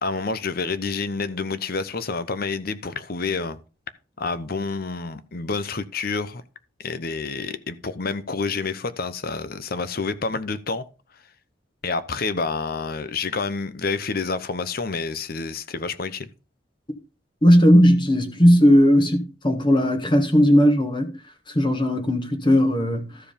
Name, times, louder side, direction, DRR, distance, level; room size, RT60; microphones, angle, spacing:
voice 1, 0.0-3.6 4.2-6.4 6.8-10.8 11.8-16.3, left 4 dB, 55° left, 0.9 m, -28 dB
voice 2, 17.4-21.1 21.5-23.1, equal, 25° left, 1.5 m, -17 dB
13.5 x 4.8 x 5.2 m
head